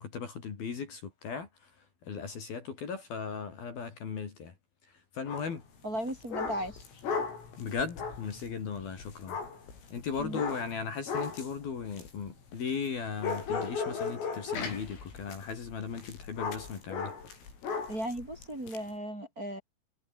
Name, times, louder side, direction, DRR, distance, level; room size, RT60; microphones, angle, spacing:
voice 1, 0.0-1.7 2.0-4.6 4.9-5.6 7.6-9.4 9.9-17.1, left 6 dB, 50° left, 5.2 m, -37 dB
sound 1, 5.3-5.6 6.0-12.9 13.2-18.8, left 5 dB, 80° left, 10.5 m, -37 dB
voice 2, 5.8-6.8 10.2-10.4 17.9-19.6, right 1 dB, 15° right, 6.2 m, -36 dB
omnidirectional pair, 5.8 m